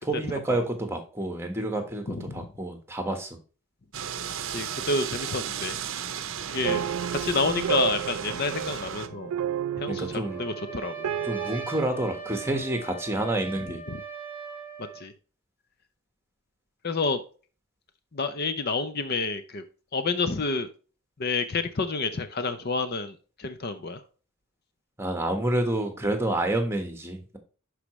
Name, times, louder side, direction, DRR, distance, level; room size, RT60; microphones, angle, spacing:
voice 1, 0.0-3.4 6.6-6.9 9.9-10.4 11.2-13.8 25.0-27.4, right 1 dB, 10° right, 5 dB, 1.3 m, -29 dB
voice 2, 2.1-2.4 4.5-5.8 6.5-6.8 7.1-9.3 9.8-11.1 13.9-14.0 15.0-15.1 16.8-17.2 18.1-19.6 19.9-20.7 21.2-24.0, left 3 dB, 45° left, 10 dB, 0.6 m, -29 dB
sound 1, 3.9-9.1, right 8 dB, 60° right, 0.7 m, -34 dB
sound 2, 6.6-11.7, right 9 dB, 75° right, 0.3 m, -31 dB
Trumpet, 10.2-15.0, right 5 dB, 25° left, 3.7 m, -39 dB
11.5 x 4.9 x 3.1 m, 0.37 s
head